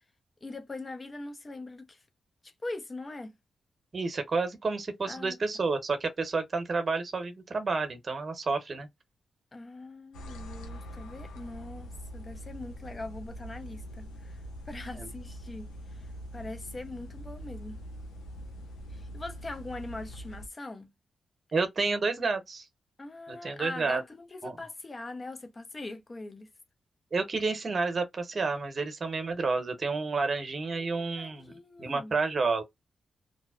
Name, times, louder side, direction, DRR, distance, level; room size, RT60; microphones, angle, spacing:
voice 1, 0.4-2.0 2.4-3.3 5.0-5.4 9.5-16.1 16.3-17.8 18.9-20.9 23.0-26.5 30.7-32.1, left 2 dB, 35° left, 0.6 m, -42 dB
voice 2, 3.9-8.9 14.9-15.1 21.5-22.6 23.3-24.0 24.4-24.6 27.1-31.5 31.8-32.6, right 4 dB, 50° right, 0.8 m, -30 dB
sound 1, 10.1-20.5, equal, 85° left, 0.5 m, -43 dB
2.7 x 2.0 x 2.3 m
supercardioid pair, 40°, 0 cm